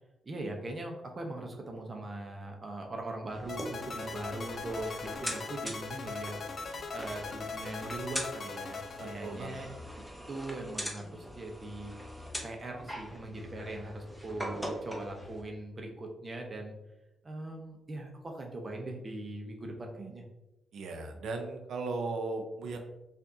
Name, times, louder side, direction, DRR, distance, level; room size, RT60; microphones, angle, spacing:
voice 1, 0.2-6.4 6.9-9.7 10.3-11.9 12.4-16.7 17.2-20.3, right 2 dB, 30° right, 2 dB, 0.7 m, -40 dB
sound 1, 3.3-15.4, equal, ahead, 0.6 m, -43 dB
sound 2, 3.5-9.8, left 4 dB, 50° left, 0.4 m, -40 dB
voice 2, 9.0-9.7 20.7-22.8, right 3 dB, 75° right, 4 dB, 0.5 m, -37 dB
4.7 x 2.5 x 2.7 m, 0.97 s
cardioid pair, 105°, 0 cm